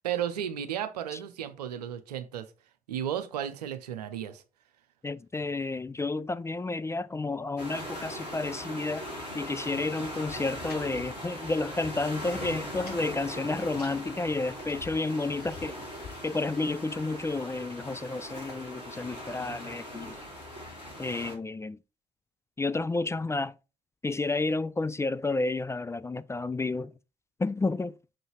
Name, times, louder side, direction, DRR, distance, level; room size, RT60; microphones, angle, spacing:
voice 1, 0.0-2.5 2.9-4.4, right 9 dB, 85° right, 0.7 m, -34 dB
voice 2, 5.0-9.1 9.3-15.8 16.2-20.2 21.0-21.8 22.6-23.5 24.0-26.9 27.4-27.9, left 3 dB, 15° left, 0.3 m, -31 dB
sound 1, 7.6-21.3, equal, 85° left, 1.5 m, -40 dB
sound 2, 10.3-11.8 12.1-13.1 13.4-16.2, left 5 dB, 50° left, 3.2 m, -49 dB
6.4 x 3.9 x 4.5 m
figure-of-eight pair, 45°, 20 cm